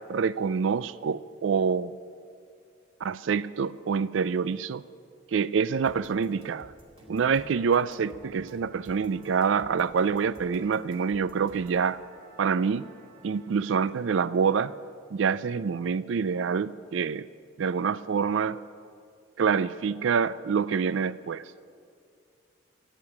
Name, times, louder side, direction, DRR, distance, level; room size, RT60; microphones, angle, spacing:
voice 1, 0.1-1.9 3.0-4.8 5.3-6.7 7.1-12.0 12.4-12.9 13.2-14.7 15.1-17.3 17.6-18.6 19.4-21.4, right 6 dB, 75° right, 17 dB, 0.4 m, -26 dB
sound 1, 5.9-11.8, equal, 30° right, 2.5 m, -54 dB
Musical instrument, 7.0-14.8, left 1 dB, 50° right, 4.2 m, -54 dB
14.0 x 8.9 x 9.9 m, 2.3 s
head